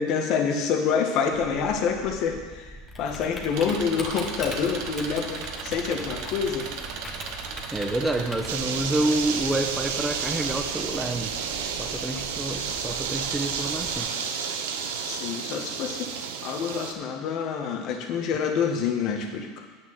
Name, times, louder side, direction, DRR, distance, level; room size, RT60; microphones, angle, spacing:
voice 1, 0.0-2.7 3.0-6.7 15.0-16.1 16.4-19.5, left 6 dB, 55° left, 3 dB, 1.7 m, -27 dB
Typing, 1.3-14.0, left 1 dB, 20° left, 1.6 m, -43 dB
Engine, 3.5-8.5, right 5 dB, 60° right, 1.3 m, -36 dB
voice 2, 7.7-11.3 11.8-14.1, right 2 dB, 10° right, 6 dB, 1.0 m, -28 dB
sound 1, 8.5-16.9, right 6 dB, 85° right, 1.0 m, -31 dB
8.9 x 6.2 x 7.8 m, 1.4 s
supercardioid pair, 110°, 0 cm